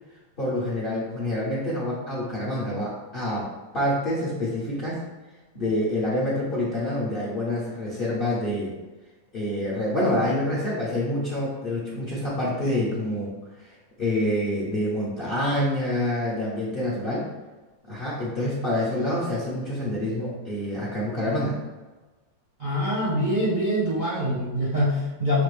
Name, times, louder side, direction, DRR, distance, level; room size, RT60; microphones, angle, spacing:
voice 1, 0.4-3.5 3.7-5.0 5.5-8.8 9.3-13.3 13.6-17.3 17.9-21.6, left 1 dB, 50° left, -6 dB, 0.6 m, -27 dB
voice 2, 22.6-25.4, equal, 45° right, -8 dB, 0.6 m, -24 dB
5.8 x 2.8 x 3.1 m, 1.2 s
omnidirectional pair, 2.1 m